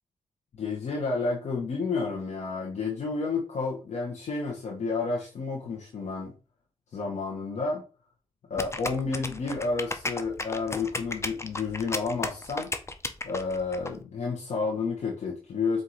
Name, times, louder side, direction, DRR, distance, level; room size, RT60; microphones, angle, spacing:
voice 1, 0.5-6.3 6.9-7.8 8.5-12.7 13.2-15.8, left 4 dB, 75° left, -2 dB, 1.0 m, -30 dB
sound 1, 8.6-13.9, left 2 dB, 25° left, 0.6 m, -34 dB
4.5 x 2.6 x 3.9 m, 0.34 s
cardioid pair, 65°, 12 cm